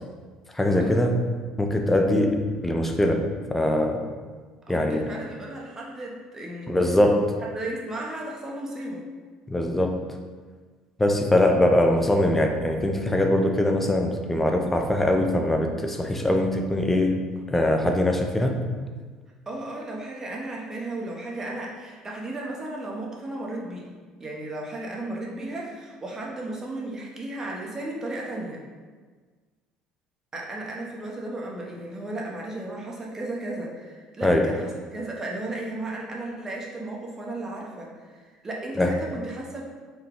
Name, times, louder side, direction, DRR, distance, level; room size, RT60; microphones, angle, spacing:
voice 1, 0.5-1.1 1.6-4.0 4.7-5.0 6.7-7.3 9.5-10.0 11.0-17.2 17.5-18.6 34.2-34.5 38.8-39.0, left 1 dB, 10° left, 3 dB, 0.5 m, -22 dB
voice 2, 4.7-6.7 7.5-9.0 19.5-23.9 24.2-28.6 30.3-39.7, right 2 dB, 25° right, -2 dB, 0.8 m, -35 dB
3.9 x 2.2 x 3.6 m, 1.5 s
supercardioid pair, 85°, 2 cm